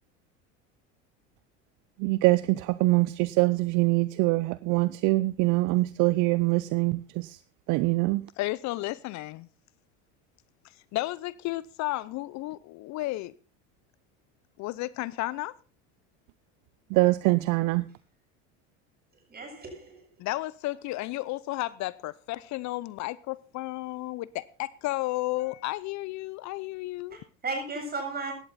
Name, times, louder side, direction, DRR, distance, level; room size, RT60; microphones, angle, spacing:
voice 1, 2.0-7.4 7.7-8.2 16.9-17.9, right 21 dB, 60° right, 0.7 m, -24 dB
voice 2, 8.4-9.5 10.6-13.3 14.6-15.5 20.2-27.2, left 18 dB, 55° left, 0.7 m, -33 dB
voice 3, 19.3-20.1 27.1-28.3, right 3 dB, 25° right, 7.9 m, -35 dB
16.5 x 11.5 x 4.2 m
supercardioid pair, 95°, 35 cm